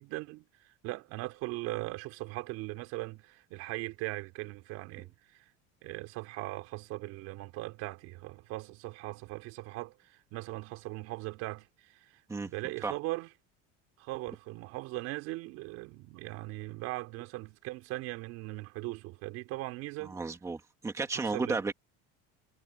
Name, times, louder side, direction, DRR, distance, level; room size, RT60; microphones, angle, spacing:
voice 1, 0.0-5.4 5.8-12.1 12.5-13.3 14.0-20.2 21.1-21.6, right 20 dB, 60° right, 3.9 m, -39 dB
voice 2, 20.0-21.7, right 4 dB, 10° right, 2.1 m, -33 dB
cardioid pair, 180°, 30 cm